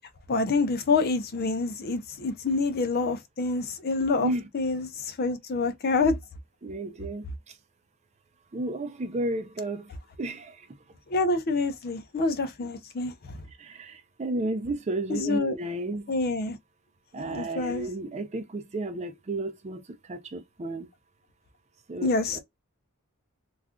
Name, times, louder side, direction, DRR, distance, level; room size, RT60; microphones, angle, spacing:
voice 1, 0.3-6.2 11.1-13.4 15.1-15.6 16.1-16.6 17.2-17.9 22.0-22.4, left 3 dB, 45° left, 0.4 m, -27 dB
voice 2, 6.6-7.3 8.5-9.9 10.2-10.7 13.6-16.0 17.1-19.8 20.1-20.9 21.9-22.4, right 2 dB, 30° right, 0.5 m, -32 dB
2.4 x 2.3 x 3.5 m
head